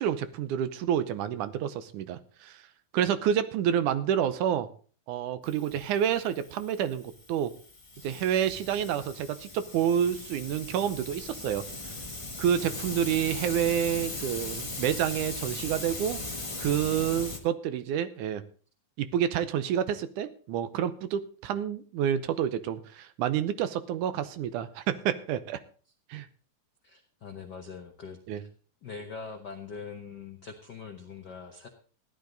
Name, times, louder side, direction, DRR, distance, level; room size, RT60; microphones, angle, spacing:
voice 1, 0.0-2.6 2.9-4.7 5.1-7.5 8.0-11.6 12.4-16.2 16.6-18.4 19.0-25.6 26.1-26.3 28.3-28.4, right 9 dB, 75° right, 12 dB, 2.1 m, -28 dB
Hiss, 5.4-17.4, left 2 dB, 45° left, 0.4 m, -39 dB
voice 2, 26.8-28.5 28.8-31.7, left 5 dB, 85° left, 4 dB, 0.9 m, -43 dB
15.0 x 11.0 x 4.0 m, 0.41 s
omnidirectional pair, 3.8 m